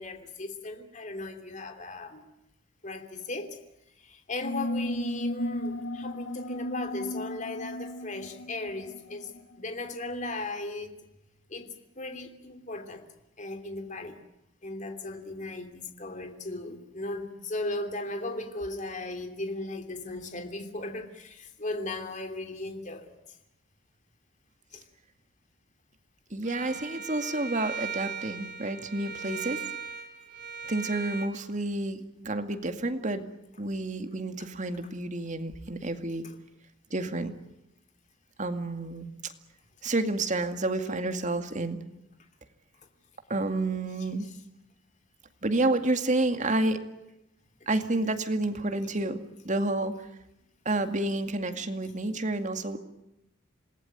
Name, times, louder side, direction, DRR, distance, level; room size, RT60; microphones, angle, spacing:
voice 1, 0.0-2.2 2.8-3.6 4.0-9.3 9.6-10.9 11.5-13.1 13.4-14.1 14.6-23.1 24.7-24.8 34.8-34.9 36.2-36.4 43.8-43.9 47.9-48.2, left 2 dB, 40° left, 6 dB, 3.0 m, -37 dB
sound 1, 4.4-9.6, left 1 dB, 65° left, 1.2 m, -35 dB
voice 2, 26.3-29.6 30.6-33.3 33.6-36.2 36.9-37.3 38.4-39.1 39.8-41.8 43.3-44.3 45.4-46.8 47.7-49.9 50.7-52.8, right 2 dB, 40° right, 7 dB, 2.2 m, -29 dB
Bowed string instrument, 26.4-31.3, right 6 dB, 60° right, 2.3 m, -38 dB
27.5 x 19.5 x 9.2 m, 0.89 s
head